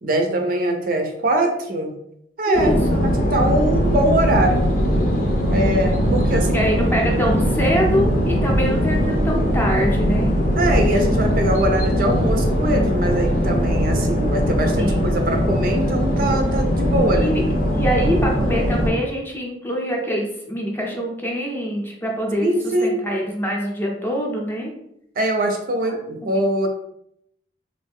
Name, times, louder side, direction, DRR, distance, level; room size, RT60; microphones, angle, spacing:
voice 1, 0.0-1.9 2.4-2.8 3.0-4.6 5.4-6.6 10.6-17.3 22.4-23.0 25.2-26.7, right 1 dB, 55° right, 4 dB, 0.5 m, -22 dB
sound 1, 2.5-18.9, equal, 50° left, 0.7 m, -20 dB
voice 2, 2.5-3.0 6.5-10.3 14.8-15.0 17.1-17.4 17.7-24.7 25.9-26.0 26.2-26.4, equal, 10° left, -1 dB, 0.6 m, -24 dB
3.2 x 2.6 x 3.5 m, 0.75 s
head